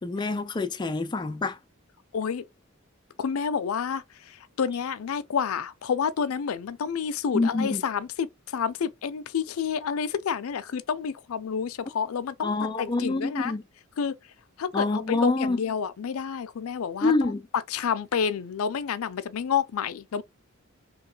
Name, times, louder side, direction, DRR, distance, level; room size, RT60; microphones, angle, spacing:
voice 1, 0.0-1.6 7.3-7.8 12.4-13.6 14.7-15.6 17.0-17.4, left 3 dB, 20° left, 0.3 m, -26 dB
voice 2, 2.1-2.4 3.2-13.5 14.0-14.2 14.6-17.3 17.7-20.2, left 7 dB, 85° left, 0.4 m, -29 dB
3.0 x 2.8 x 3.9 m
head